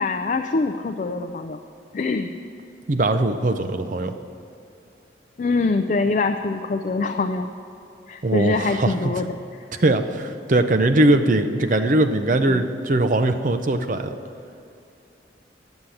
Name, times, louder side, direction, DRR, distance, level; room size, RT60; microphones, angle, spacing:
voice 1, 0.0-1.6 1.9-2.3 5.4-7.5 8.1-9.8 11.7-11.8 12.5-12.7, left 3 dB, 45° left, 7 dB, 0.3 m, -24 dB
voice 2, 2.9-4.1 8.2-9.1 9.8-14.1, right 2 dB, 45° right, 8 dB, 0.6 m, -20 dB
9.9 x 7.2 x 7.7 m, 2.6 s
head